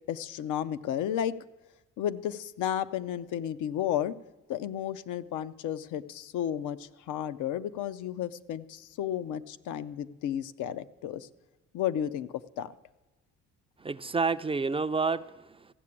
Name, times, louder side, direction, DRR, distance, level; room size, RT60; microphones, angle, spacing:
voice 1, 0.1-1.3 2.0-4.1 4.5-11.3 11.7-12.3 12.6-12.7, left 10 dB, 85° left, 13 dB, 0.6 m, -32 dB
voice 2, 13.8-15.7, right 4 dB, 20° right, 13 dB, 0.3 m, -29 dB
14.5 x 6.8 x 8.5 m, 1.1 s
cardioid pair, 90°, 30 cm